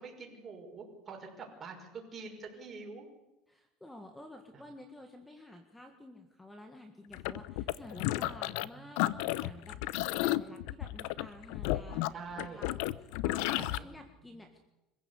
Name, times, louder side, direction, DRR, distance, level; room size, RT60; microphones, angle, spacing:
voice 1, 0.0-3.1 4.5-4.6 7.9-8.3 8.7-8.9 10.5-10.6 12.1-12.7 13.6-13.9 14.2-14.4, right 4 dB, 25° right, 2 dB, 5.7 m, -46 dB
voice 2, 3.5-14.6, left 1 dB, 10° left, 5 dB, 1.8 m, -51 dB
sound 1, 7.1-8.7 9.0-13.8, left 17 dB, 75° left, 0.8 m, -33 dB
25.5 x 15.5 x 8.3 m, 1.0 s
supercardioid pair, 130°, 0 cm